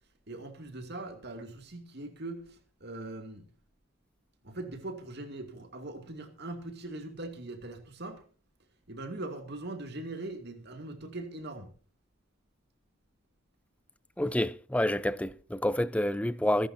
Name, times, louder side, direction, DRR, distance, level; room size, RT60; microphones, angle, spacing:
voice 1, 0.3-3.5 4.4-8.2 8.9-11.7, right 2 dB, 55° right, 2.5 m, -41 dB
voice 2, 14.2-16.7, left 1 dB, 5° left, 0.6 m, -28 dB
25.5 x 11.5 x 2.8 m
head